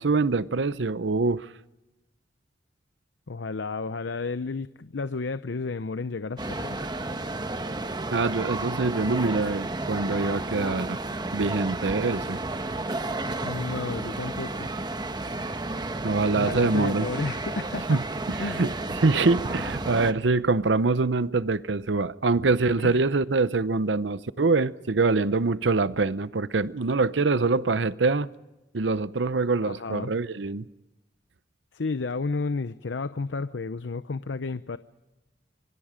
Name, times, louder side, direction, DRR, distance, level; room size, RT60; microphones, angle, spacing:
voice 1, 0.0-1.5 8.1-11.0 11.3-12.4 16.0-17.1 17.9-18.0 18.3-28.3 28.7-30.7, right 3 dB, 80° right, 0.7 m, -24 dB
voice 2, 3.3-6.9 13.4-14.8 16.3-18.0 18.4-18.7 22.8-23.0 29.6-30.1 31.7-34.8, left 4 dB, 85° left, 0.7 m, -32 dB
sound 1, 6.4-20.1, right 2 dB, 25° right, 1.1 m, -32 dB
26.0 x 24.0 x 5.1 m
head